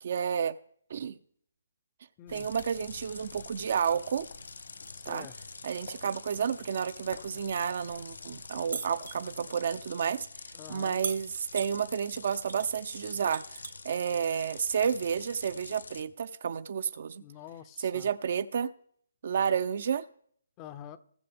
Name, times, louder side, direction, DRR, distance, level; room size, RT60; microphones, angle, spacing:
voice 1, 0.0-0.6 0.9-1.2 2.3-4.3 5.1-5.3 5.6-10.3 10.7-17.2 17.8-18.7 19.2-20.1, right 7 dB, 50° right, 0.5 m, -31 dB
sound 1, 2.3-16.0, left 4 dB, 85° left, 0.7 m, -47 dB
sound 2, 2.3-9.6, left 5 dB, 65° left, 1.2 m, -53 dB
voice 2, 4.9-5.3 10.5-11.0 17.2-18.1 20.6-21.0, left 10 dB, 20° left, 0.5 m, -46 dB
sound 3, 8.7-9.2 11.0-11.7 12.5-12.7 13.0-14.0 15.2-15.3, right 5 dB, 70° right, 0.9 m, -37 dB
20.0 x 6.8 x 3.5 m
hypercardioid pair, 155°, 0 cm